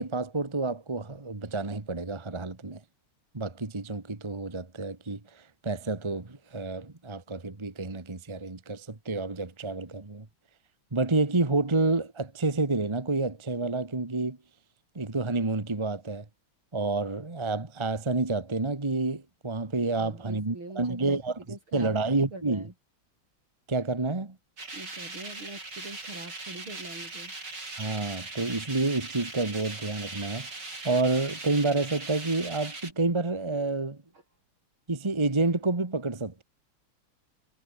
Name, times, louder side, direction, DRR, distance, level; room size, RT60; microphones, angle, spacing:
voice 1, 0.0-2.8 3.3-10.2 10.9-14.4 14.9-16.2 16.7-21.3 21.7-22.6 23.7-24.3 27.8-30.5 30.8-34.0 34.9-36.4, right 3 dB, 15° right, 1.4 m, -29 dB
voice 2, 19.9-21.2 21.5-22.7 24.7-27.3, right 2 dB, 75° right, 8.3 m, -43 dB
sound 1, 24.6-32.9, right 3 dB, 55° right, 6.4 m, -40 dB
omnidirectional pair, 2.3 m